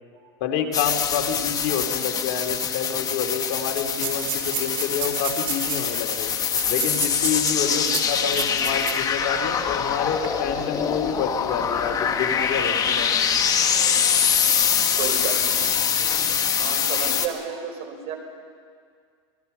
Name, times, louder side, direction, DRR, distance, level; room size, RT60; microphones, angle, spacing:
voice 1, 0.4-6.3 6.7-13.2, left 7 dB, 60° left, 4 dB, 2.7 m, -28 dB
sound 1, 0.7-17.3, left 7 dB, 25° left, 1.5 m, -24 dB
sound 2, 2.6-2.7 2.9-3.0 3.7-9.1 9.5-9.6 10.1-10.3, right 10 dB, 70° right, 4.5 m, -32 dB
voice 2, 7.6-8.0 14.7-15.7 16.6-18.1, right 6 dB, 45° right, 2 dB, 5.4 m, -33 dB
28.0 x 20.5 x 5.5 m, 2.1 s
supercardioid pair, 135°, 14 cm